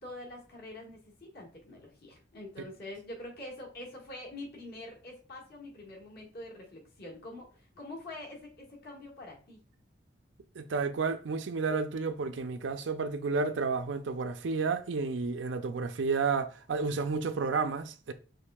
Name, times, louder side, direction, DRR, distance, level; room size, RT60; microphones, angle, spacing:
voice 1, 0.0-9.6, left 1 dB, 55° left, 1.6 m, -45 dB
voice 2, 10.6-18.1, right 4 dB, 70° right, 0.5 m, -31 dB
6.3 x 3.2 x 2.3 m
head